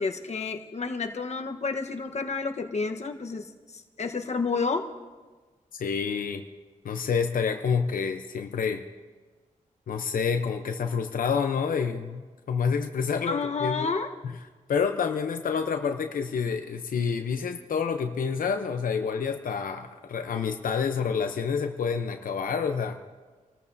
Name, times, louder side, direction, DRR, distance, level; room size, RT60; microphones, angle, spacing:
voice 1, 0.0-3.5 3.7-4.9 13.3-14.1, left 4 dB, 55° left, 4 dB, 1.1 m, -30 dB
voice 2, 5.7-6.4 6.8-8.8 9.9-13.9 14.2-14.3 14.7-23.0, left 6 dB, 90° left, 6 dB, 0.7 m, -28 dB
27.5 x 14.0 x 2.7 m, 1.3 s
cardioid pair, 75°, 14 cm